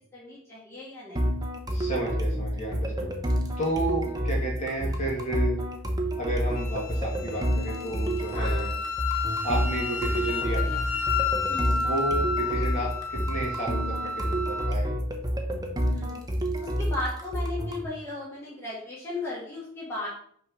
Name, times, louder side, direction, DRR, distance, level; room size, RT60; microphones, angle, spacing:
voice 1, 0.1-1.2 4.0-4.2 8.3-8.7 11.5-11.9 15.9-16.2 16.6-20.1, left 2 dB, 10° left, -7 dB, 1.6 m, -36 dB
sound 1, 1.2-17.8, equal, 20° right, 0.7 m, -29 dB
voice 2, 1.7-3.1 3.6-5.6 6.2-8.7 9.4-10.8 11.8-14.9, right 1 dB, 35° left, -2 dB, 2.1 m, -32 dB
Wind instrument woodwind instrument, 6.5-14.7, left 4 dB, 70° left, 0.7 m, -31 dB
5.8 x 3.4 x 5.3 m, 0.64 s
head